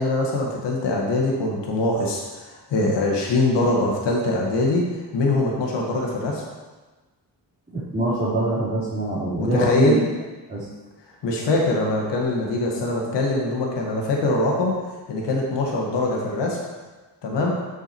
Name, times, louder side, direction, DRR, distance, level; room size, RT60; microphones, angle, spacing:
voice 1, 0.0-4.9 5.1-6.4 9.4-10.0 11.2-14.8 15.1-16.6 17.2-17.6, left 2 dB, 85° left, -1 dB, 1.8 m, -23 dB
voice 2, 7.7-10.0 10.5-10.6, right 2 dB, 20° right, -11 dB, 3.1 m, -24 dB
8.5 x 6.5 x 4.5 m, 1.2 s
cardioid pair, 90°, 41 cm